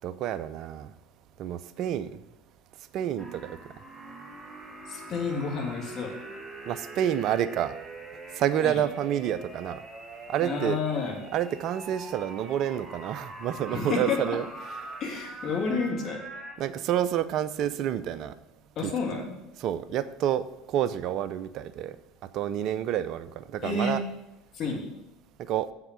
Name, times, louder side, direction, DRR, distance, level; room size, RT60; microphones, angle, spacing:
voice 1, 0.0-0.9 1.4-2.2 2.9-3.6 6.7-7.7 8.4-9.8 10.3-10.8 11.3-14.4 16.6-18.3 18.8-18.9 19.6-21.9 22.3-24.0 25.5-25.7, right 10 dB, 55° right, 14 dB, 0.6 m, -29 dB
sound 1, 3.2-16.6, right 2 dB, 15° right, 1.5 m, -43 dB
voice 2, 4.9-6.1 8.6-8.8 10.4-11.2 13.7-14.2 15.0-16.2 18.8-19.3 23.6-24.0 24.5-24.9, left 4 dB, 50° left, 0 dB, 2.5 m, -30 dB
8.1 x 5.8 x 7.6 m, 0.92 s
hypercardioid pair, 70°, 0 cm